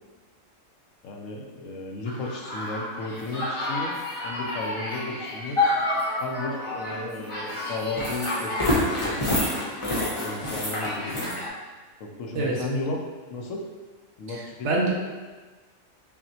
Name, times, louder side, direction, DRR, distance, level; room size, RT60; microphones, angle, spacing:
voice 1, 1.0-4.0 4.2-5.6 6.2-9.4 10.2-11.4 12.0-13.0 13.3-13.6 14.2-14.9, left 2 dB, 75° left, 0 dB, 0.9 m, -34 dB
sound 1, 2.0-11.5, left 2 dB, 30° left, 0.7 m, -28 dB
voice 2, 14.3-14.9, right 2 dB, 65° right, -3 dB, 0.9 m, -26 dB
5.7 x 2.1 x 2.7 m, 1.3 s
omnidirectional pair, 1.4 m